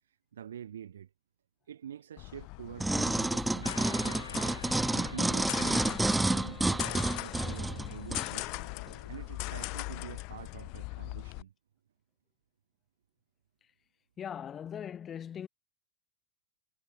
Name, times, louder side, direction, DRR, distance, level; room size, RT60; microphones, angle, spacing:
voice 1, 0.3-1.1 1.7-4.5 4.9-8.6 9.1-11.5, right 9 dB, 65° right, 2.4 m, -46 dB
sound 1, 2.2-11.4, left 28 dB, 45° left, 2.9 m, -40 dB
sound 2, 2.8-8.3 8.9-9.0, right 2 dB, 5° right, 0.5 m, -30 dB
sound 3, 3.6-9.1, left 3 dB, 80° left, 6.0 m, -51 dB
voice 2, 14.2-15.5, left 9 dB, 25° left, 3.3 m, -40 dB
figure-of-eight pair, 90°, 0 cm